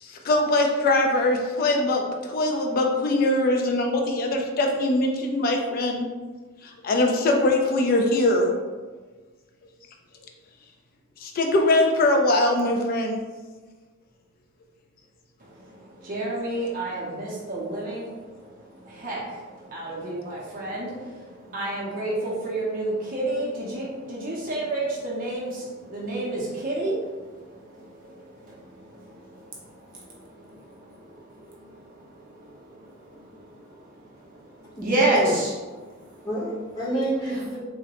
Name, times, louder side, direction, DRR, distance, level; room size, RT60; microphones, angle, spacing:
voice 1, 0.0-6.0 6.8-8.5 11.2-13.2, left 2 dB, 45° left, 2 dB, 0.3 m, -22 dB
voice 2, 15.4-35.5 35.8-36.3 37.3-37.4, right 2 dB, 45° right, -5 dB, 0.6 m, -31 dB
voice 3, 34.8-35.3 36.2-37.6, equal, 15° left, -9 dB, 0.9 m, -28 dB
3.7 x 2.1 x 2.9 m, 1.3 s
head